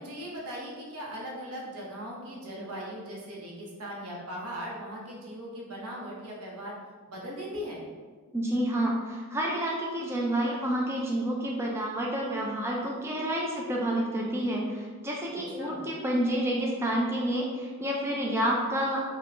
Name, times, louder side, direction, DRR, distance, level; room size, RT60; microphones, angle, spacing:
voice 1, 0.0-6.8 7.1-7.8 15.3-15.8, equal, 85° right, -3 dB, 0.9 m, -39 dB
voice 2, 8.3-19.0, right 1 dB, 10° right, -2 dB, 0.3 m, -29 dB
3.7 x 2.2 x 3.2 m, 1.5 s
head